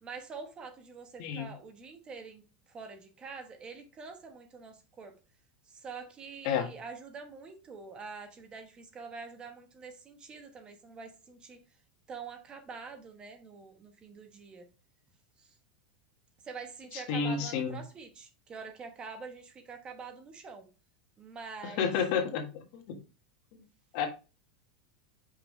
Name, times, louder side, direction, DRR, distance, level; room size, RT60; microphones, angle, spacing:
voice 1, 0.0-2.4 2.7-5.1 5.7-11.6 12.1-14.7 15.4-15.5 16.4-20.7 21.2-21.9, right 5 dB, 25° right, 1.1 m, -45 dB
voice 2, 1.2-1.5 6.4-6.7 16.9-17.8 21.6-22.5 22.7-23.0 23.5-23.6 23.9-24.1, left 6 dB, 55° left, 1.5 m, -30 dB
5.5 x 5.4 x 3.1 m
supercardioid pair, 145°, 4 cm